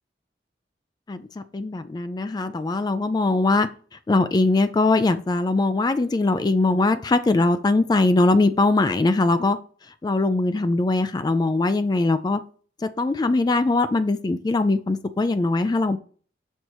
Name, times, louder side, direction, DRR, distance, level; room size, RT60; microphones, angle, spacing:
voice 1, 1.1-3.7 4.1-9.6 10.0-12.4 13.0-16.0, left 2 dB, 25° left, 12 dB, 0.3 m, -21 dB
6.3 x 5.3 x 3.0 m, 0.42 s
head